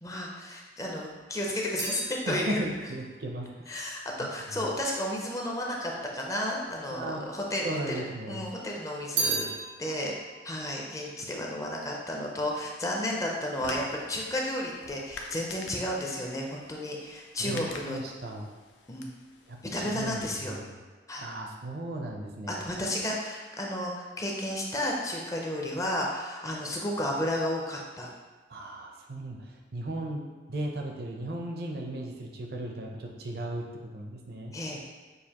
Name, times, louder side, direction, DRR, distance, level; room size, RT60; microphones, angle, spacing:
voice 1, 0.0-2.6 3.7-7.9 8.3-9.5 9.8-10.1 10.4-18.0 18.9-19.1 19.7-20.6 21.1-21.3 22.5-28.1 34.5-34.8, left 1 dB, 20° left, -2 dB, 0.5 m, -32 dB
sound 1, 0.8-5.2 6.0-6.8 7.1-8.2 8.6-12.1 12.4-12.9, right 3 dB, 85° right, 1.1 m, -37 dB
voice 2, 2.3-3.5 4.2-4.7 6.9-8.5 9.2-9.5 17.4-18.5 19.5-20.8 21.2-22.6 28.5-33.7 33.9-34.5, right 1 dB, 60° right, 1 dB, 0.6 m, -36 dB
sound 2, 13.1-20.4, left 3 dB, 85° left, 0.5 m, -47 dB
6.5 x 2.5 x 2.9 m, 1.3 s
head